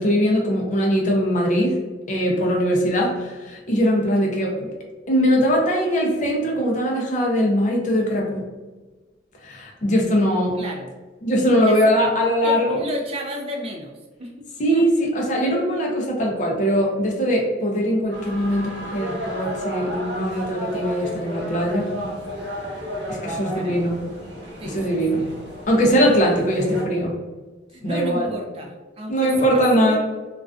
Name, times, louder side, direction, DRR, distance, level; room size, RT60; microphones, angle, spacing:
voice 1, 0.0-1.8 2.1-4.7 5.1-8.5 9.4-10.6 11.2-12.8 14.6-21.9 23.1-24.0 24.7-25.3 25.7-27.1 27.8-28.3 29.1-30.0, equal, 45° left, -1 dB, 0.5 m, -21 dB
voice 2, 10.6-10.9 11.7-11.8 12.4-14.3 14.7-15.1 23.3-23.9 24.6-25.2 25.9-26.0 27.7-29.3 29.8-30.0, equal, 30° right, 1 dB, 0.3 m, -33 dB
sound 1, 18.1-26.8, equal, 80° right, 1.0 m, -33 dB
2.4 x 2.3 x 2.3 m, 1.2 s
head